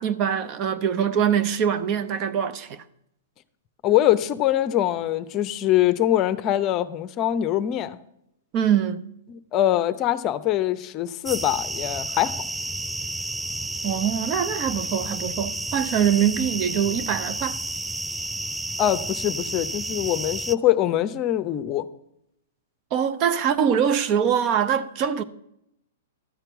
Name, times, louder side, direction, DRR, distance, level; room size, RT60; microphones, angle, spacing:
voice 1, 0.0-2.8 8.5-9.0 13.8-17.6 22.9-25.2, right 8 dB, 40° right, 0.7 m, -23 dB
voice 2, 3.8-8.0 9.3-12.4 18.8-21.9, left 12 dB, 35° left, 0.6 m, -23 dB
sound 1, 11.2-20.6, right 2 dB, 5° right, 0.3 m, -31 dB
12.5 x 4.5 x 7.9 m
hypercardioid pair, 115°, 0 cm